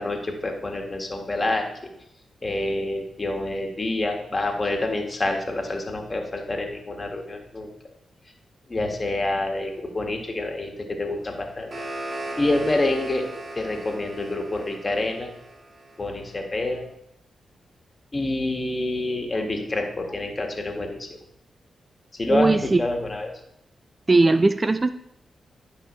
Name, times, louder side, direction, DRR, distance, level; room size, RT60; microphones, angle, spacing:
voice 1, 0.0-1.6 2.4-7.7 8.7-10.7 11.0-11.7 12.4-13.2 13.5-15.3 16.0-16.8 18.1-21.1 22.1-23.3, left 2 dB, 35° left, 2 dB, 1.8 m, -27 dB
sound 1, 11.3-16.4, right 1 dB, 50° right, 2.7 m, -37 dB
voice 2, 22.3-22.8 24.1-24.9, right 3 dB, 35° right, 13 dB, 0.4 m, -19 dB
10.5 x 5.6 x 3.2 m, 0.77 s
supercardioid pair, 45°, 0 cm